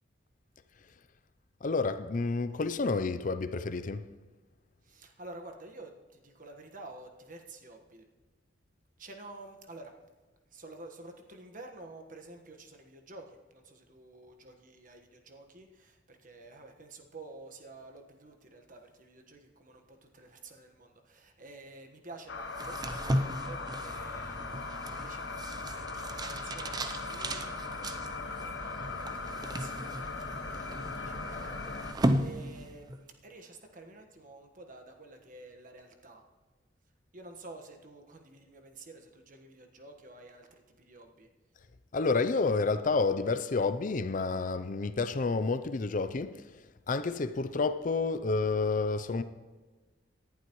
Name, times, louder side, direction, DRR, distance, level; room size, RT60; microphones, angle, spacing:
voice 1, 1.6-4.1 41.9-49.2, left 4 dB, 45° left, 0.5 m, -30 dB
voice 2, 4.8-8.1 9.0-9.9 10.5-36.2 37.1-41.3, right 2 dB, 45° right, 1.4 m, -50 dB
sound 1, 22.3-31.9, left 4 dB, 70° left, 1.1 m, -39 dB
sound 2, 22.5-33.1, right 1 dB, 20° right, 0.6 m, -36 dB
18.5 x 11.0 x 3.1 m
head